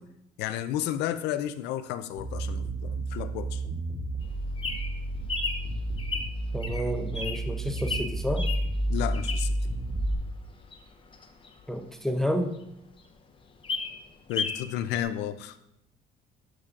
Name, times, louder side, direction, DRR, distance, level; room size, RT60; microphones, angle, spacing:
voice 1, 0.4-3.6 8.9-9.6 14.3-15.6, left 11 dB, 90° left, 11 dB, 0.5 m, -32 dB
sound 1, 2.1-10.1, right 1 dB, 35° right, 2.8 m, -31 dB
Bird vocalization bird call bird song, 4.2-9.7 10.1-12.3 12.7-12.8 13.0-13.1 13.4-14.7 14.9-15.0, left 4 dB, 30° left, 0.8 m, -34 dB
voice 2, 6.5-8.5 11.7-12.6, equal, ahead, 6 dB, 0.5 m, -30 dB
10.5 x 6.1 x 2.5 m, 0.77 s
cardioid pair, 110°, 17 cm